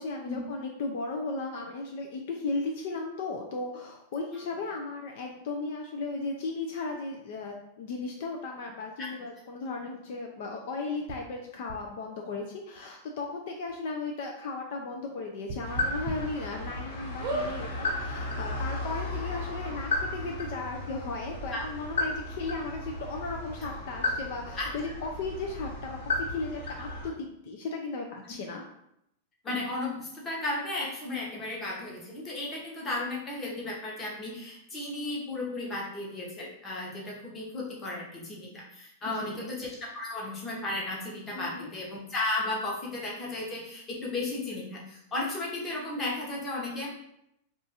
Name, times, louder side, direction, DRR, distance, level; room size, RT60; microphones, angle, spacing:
voice 1, 0.0-28.6 39.2-39.5 41.3-41.7, left 3 dB, 60° left, 2 dB, 0.4 m, -36 dB
sound 1, 11.1-11.2 11.7-11.8 12.7-12.8 13.2-13.3 13.7-13.8 15.4-16.1 16.6-16.7 17.2-17.5 18.3-18.4 18.6-18.7, right 2 dB, 50° right, 0.7 m, -33 dB
sound 2, 15.6-27.1, left 2 dB, 85° left, 1.4 m, -34 dB
voice 2, 29.4-46.9, left 2 dB, 20° left, -3 dB, 0.9 m, -34 dB
2.5 x 2.4 x 4.1 m, 0.78 s
supercardioid pair, 145°, 0 cm